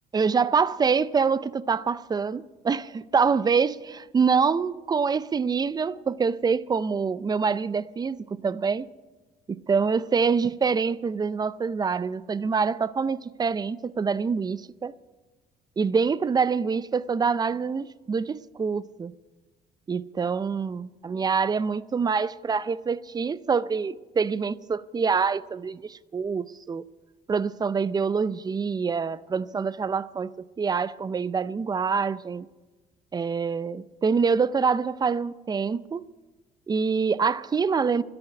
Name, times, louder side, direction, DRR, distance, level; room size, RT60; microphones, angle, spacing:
voice 1, 0.1-8.9 9.5-14.9 15.8-19.1 19.9-26.8 27.3-30.3 30.6-32.5 33.1-36.0 36.7-38.0, right 5 dB, 25° right, 0.5 m, -25 dB
13.0 x 10.5 x 9.0 m
cardioid pair, 110°, 17 cm